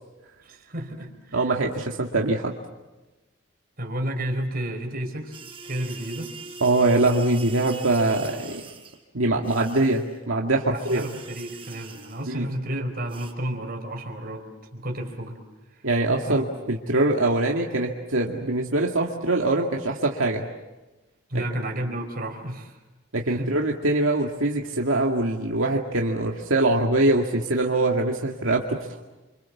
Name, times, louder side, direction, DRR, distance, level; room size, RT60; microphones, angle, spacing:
voice 1, 0.4-1.5 3.8-6.3 9.5-9.6 10.7-15.4 15.7-15.9 16.3-16.4 21.3-22.8 23.2-23.6, right 1 dB, 45° right, 3 dB, 4.3 m, -32 dB
voice 2, 1.3-2.6 6.6-8.6 9.1-11.0 12.3-12.5 15.8-20.5 23.1-29.0, right 2 dB, 75° right, 0 dB, 2.1 m, -23 dB
sound 1, 5.3-9.0 9.4-10.2 10.8-12.4 13.1-13.3, right 4 dB, 25° right, 4.0 m, -42 dB
29.0 x 26.0 x 7.3 m, 1.1 s
head